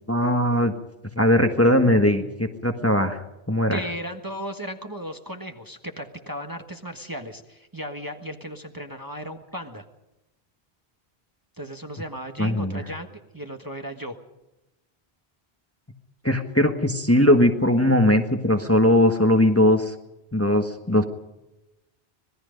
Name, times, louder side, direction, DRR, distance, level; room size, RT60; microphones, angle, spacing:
voice 1, 0.1-0.7 1.2-3.8 12.4-12.8 16.2-19.9 20.3-21.0, left 1 dB, 15° left, 5 dB, 1.4 m, -20 dB
voice 2, 3.7-9.8 11.6-14.2, equal, 20° right, 4 dB, 1.5 m, -35 dB
26.0 x 19.5 x 5.2 m, 0.97 s
omnidirectional pair, 1.1 m